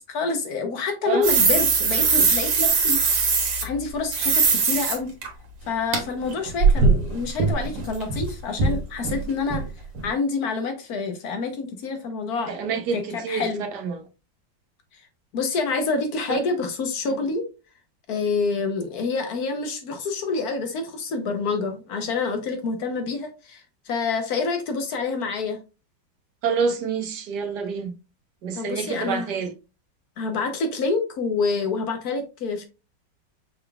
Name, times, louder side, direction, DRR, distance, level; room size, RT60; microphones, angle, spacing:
voice 1, 0.1-3.3 3.6-5.1 5.7-9.6 10.0-12.5 12.9-13.6 15.3-17.4 18.1-25.6 28.5-29.3 30.2-32.7, left 4 dB, 65° left, 1.2 m, -27 dB
sound 1, 1.2-3.6 4.1-5.0 5.2-5.3 5.9-6.0 6.3-8.3 8.6-8.8 9.0-9.2 9.5-9.6 9.9-10.1, right 4 dB, 90° right, 1.9 m, -20 dB
voice 2, 12.5-13.5 13.7-14.0 16.3-16.4 17.1-17.2 26.4-27.9 28.4-29.5, right 5 dB, 70° right, 1.3 m, -27 dB
5.7 x 3.6 x 2.3 m
omnidirectional pair, 1.9 m